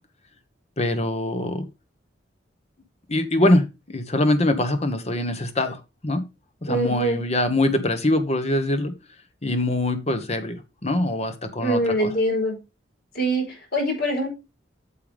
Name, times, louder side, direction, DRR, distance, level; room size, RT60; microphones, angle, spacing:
voice 1, 0.8-1.6 3.1-6.2 6.6-8.9 9.4-12.1, left 1 dB, 35° left, 1.3 m, -23 dB
voice 2, 6.7-7.2 11.6-12.6 13.1-13.4 13.7-14.3, right 1 dB, 60° left, 4.7 m, -23 dB
8.8 x 6.9 x 3.5 m
head